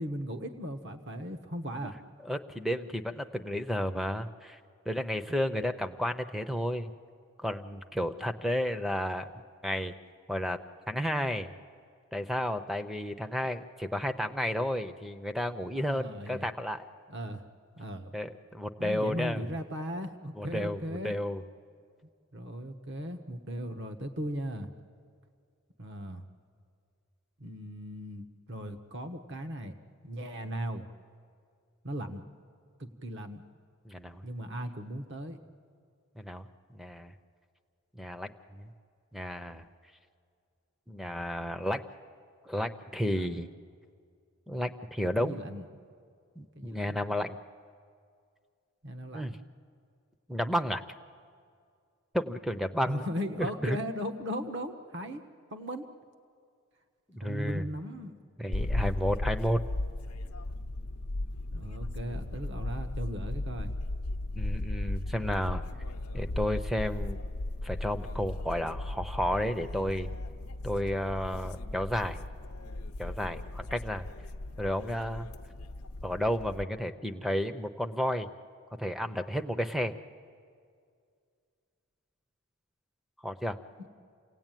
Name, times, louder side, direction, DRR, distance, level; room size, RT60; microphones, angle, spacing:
voice 1, 0.0-1.9 15.8-16.5 17.1-17.4 17.8-18.1 18.8-21.1 22.3-24.7 25.8-26.2 27.4-29.7 30.0-30.8 31.8-32.2 32.8-33.4 34.2-35.4 43.1-43.4 45.2-45.7 46.5-47.0 48.8-49.4 52.9-55.2 55.5-55.9 57.2-58.2 61.5-63.7 83.8-83.9, equal, 50° right, 7 dB, 1.2 m, -37 dB
voice 2, 2.2-4.6 4.9-6.9 7.4-9.3 9.6-9.9 10.3-10.6 10.9-11.5 12.1-16.8 18.1-19.4 20.4-20.8 21.0-21.4 33.9-34.2 36.2-37.1 38.0-38.7 39.1-39.6 40.9-41.8 42.4-43.5 44.5-45.4 46.4-47.4 49.1-49.4 50.3-50.8 52.1-53.1 53.4-53.8 57.1-57.6 58.4-59.6 64.4-65.6 66.1-67.2 67.6-70.1 70.6-72.2 73.0-74.0 74.6-75.3 76.0-78.3 78.8-79.9 83.2-83.6, equal, ahead, 9 dB, 0.7 m, -32 dB
sound 1, 58.5-76.6, left 2 dB, 85° left, 0.8 m, -36 dB
28.5 x 17.5 x 9.2 m, 2.2 s
head